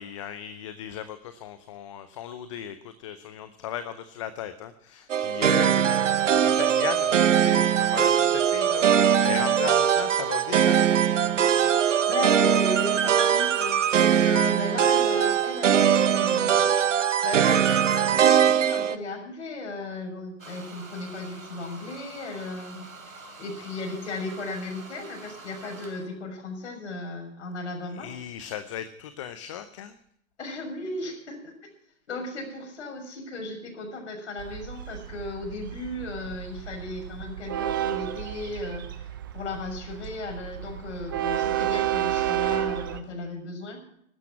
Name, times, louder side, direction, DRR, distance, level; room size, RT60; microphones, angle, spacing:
voice 1, 0.0-5.8 6.3-10.9 27.9-30.0, left 10 dB, 25° left, 12 dB, 0.6 m, -37 dB
sound 1, 5.1-19.0, right 8 dB, 65° right, 0.9 m, -21 dB
voice 2, 5.5-6.0 9.8-10.0 11.8-16.6 16.9-28.1 30.4-31.5 32.1-43.8, left 2 dB, 55° left, 2 dB, 6.5 m, -36 dB
sound 2, 20.4-26.1, right 3 dB, 80° right, 3.4 m, -46 dB
Train, 34.4-43.0, right 12 dB, 15° right, 0.5 m, -31 dB
15.0 x 12.5 x 5.8 m, 0.71 s
figure-of-eight pair, 130°, 40 cm